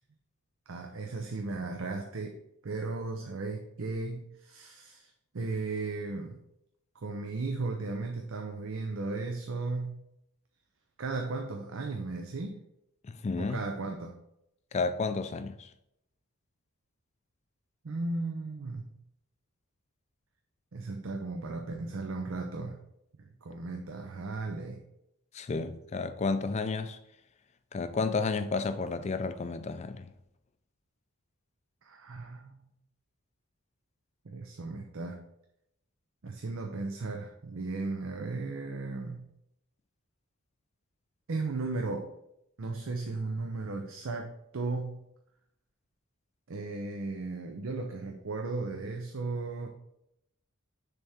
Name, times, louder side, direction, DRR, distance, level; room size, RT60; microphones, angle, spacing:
voice 1, 0.7-2.4 2.6-6.4 7.0-10.0 11.0-12.6 13.4-14.2 17.8-19.0 20.7-22.8 23.4-24.8 31.8-32.7 34.2-35.2 36.2-39.3 41.3-42.1 42.6-45.0 46.5-49.7, right 3 dB, 65° right, 0.6 m, -36 dB
voice 2, 13.1-13.6 14.7-15.7 25.3-27.0 27.7-30.1, left 4 dB, 30° left, 0.3 m, -31 dB
6.6 x 3.6 x 4.3 m
head